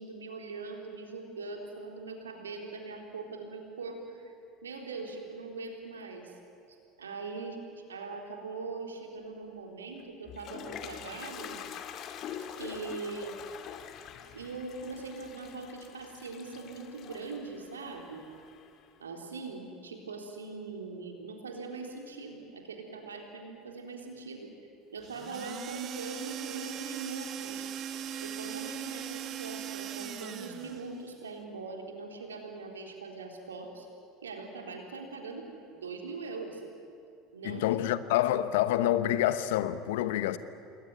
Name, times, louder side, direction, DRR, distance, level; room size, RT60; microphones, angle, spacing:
voice 1, 0.0-4.3 4.6-6.3 6.7-11.6 12.5-13.3 14.3-18.3 19.0-24.5 24.9-27.7 28.2-33.9 34.2-36.6 37.3-37.7, right 4 dB, 85° right, 3.7 m, -41 dB
Toilet flush, 10.0-18.9, left 8 dB, 45° left, 2.0 m, -45 dB
sound 1, 25.0-30.9, right 9 dB, 45° right, 1.7 m, -39 dB
voice 2, 37.4-40.4, left 13 dB, 70° left, 1.1 m, -27 dB
28.0 x 21.0 x 9.6 m
figure-of-eight pair, 75°, 0 cm